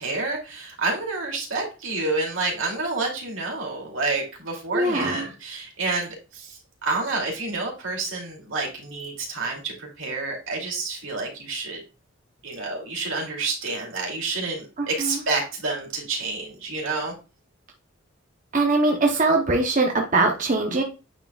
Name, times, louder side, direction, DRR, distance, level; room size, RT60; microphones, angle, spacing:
voice 1, 0.0-11.8 12.4-17.1, right 3 dB, 80° right, -1 dB, 2.6 m, -29 dB
voice 2, 4.7-5.3 14.8-15.1 18.5-20.8, right 2 dB, 40° right, 2 dB, 0.8 m, -22 dB
9.1 x 4.6 x 2.3 m, 0.31 s
head